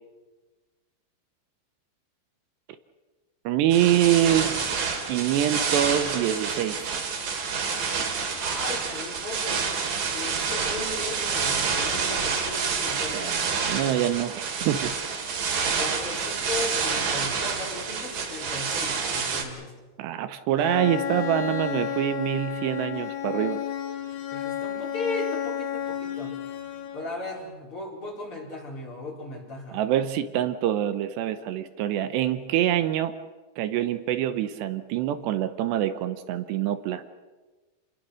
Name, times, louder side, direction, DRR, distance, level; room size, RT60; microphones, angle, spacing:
voice 1, 3.4-4.5 5.1-6.9 13.0-15.0 20.0-23.6 29.7-33.1 33.6-37.0, right 11 dB, 80° right, 10 dB, 3.0 m, -25 dB
sound 1, 3.7-19.4, right 5 dB, 55° right, 4.0 m, -28 dB
voice 2, 4.1-4.7 5.4-5.7 8.4-9.7 10.1-13.4 15.8-19.7 24.3-26.4 26.9-29.8, left 2 dB, 30° left, -1 dB, 4.8 m, -36 dB
Bowed string instrument, 20.6-27.3, left 10 dB, 70° left, 3.9 m, -32 dB
28.5 x 22.0 x 6.4 m, 1.2 s
omnidirectional pair, 5.0 m